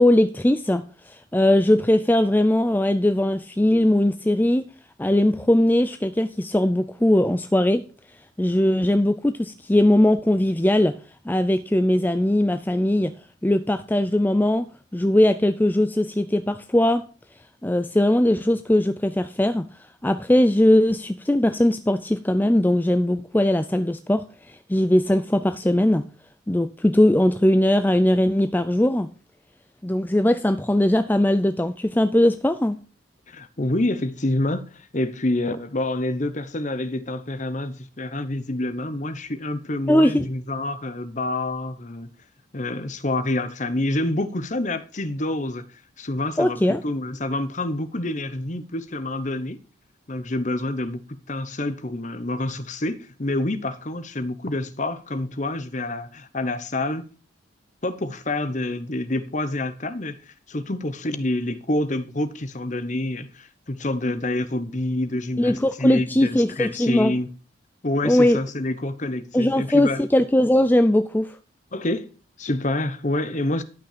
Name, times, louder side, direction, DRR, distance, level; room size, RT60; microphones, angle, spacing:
voice 1, 0.0-4.6 5.0-7.8 8.4-10.9 11.3-13.1 13.4-14.7 14.9-17.1 17.6-19.7 20.0-26.0 26.5-29.1 29.8-32.8 39.9-40.3 46.4-46.8 65.4-67.1 68.0-68.4 69.3-71.3, left 1 dB, 10° left, 0.4 m, -20 dB
voice 2, 33.3-42.1 42.5-49.6 50.1-57.0 57.8-67.3 67.8-70.0 71.7-72.1 72.4-73.6, left 1 dB, 35° left, 1.0 m, -27 dB
12.0 x 6.0 x 6.7 m
head